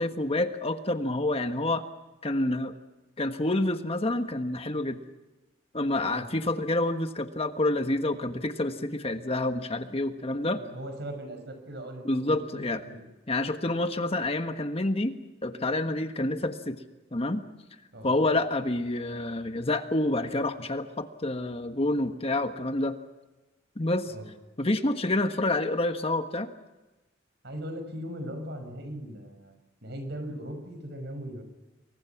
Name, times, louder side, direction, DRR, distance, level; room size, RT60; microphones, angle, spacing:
voice 1, 0.0-1.8 2.2-2.7 3.2-5.0 5.7-10.6 12.0-12.8 13.3-16.8 17.1-17.4 18.0-23.0 23.8-24.1 24.6-26.5, left 2 dB, 30° left, 8 dB, 1.4 m, -28 dB
voice 2, 10.5-13.0 17.9-18.2 24.1-24.3 27.4-29.5 29.8-31.4, equal, 60° right, 7 dB, 6.3 m, -39 dB
28.0 x 23.5 x 6.0 m, 1.1 s
head